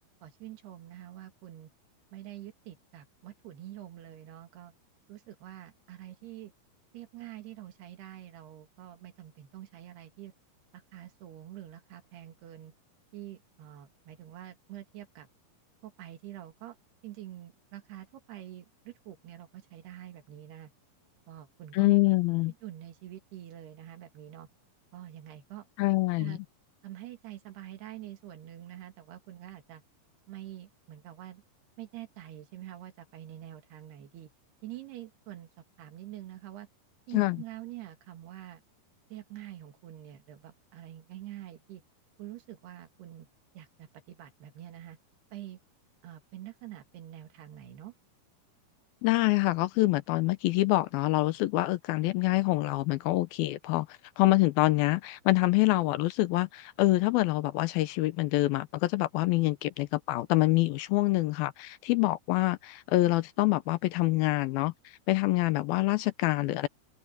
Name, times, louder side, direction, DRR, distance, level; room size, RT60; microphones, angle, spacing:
voice 1, 0.2-1.7 2.1-4.7 5.1-6.5 6.9-10.3 10.7-12.7 13.1-15.3 15.8-16.8 17.0-20.7 21.3-21.9 22.5-24.5 24.9-25.7 26.2-26.4 26.8-29.8 30.3-31.4 31.8-34.3 34.6-35.5 35.8-36.7 37.1-38.6 39.1-41.8 42.2-43.3 43.5-45.0 45.3-45.6 46.0-47.9, right 13 dB, 85° right, 4.1 m, -46 dB
voice 2, 21.7-22.5 25.8-26.4 37.1-37.4 49.0-53.9 54.2-64.7 65.1-66.7, left 19 dB, 80° left, 2.4 m, -26 dB
open air
omnidirectional pair, 4.5 m